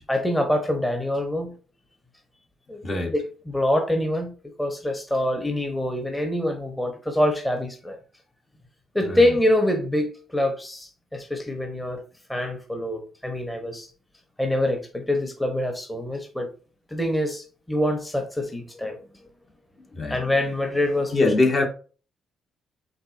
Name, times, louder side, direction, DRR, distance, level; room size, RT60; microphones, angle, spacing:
voice 1, 0.0-1.5 2.7-2.8 3.1-4.3 4.6-8.0 8.9-12.0 12.3-13.9 14.4-16.5 16.9-19.0 20.1-21.1, left 1 dB, 10° left, 1.0 m, -25 dB
voice 2, 2.8-3.1 9.0-9.2 19.9-20.2 21.1-21.7, left 3 dB, 40° left, 1.3 m, -22 dB
5.2 x 3.5 x 2.7 m
cardioid pair, 90°, 0 cm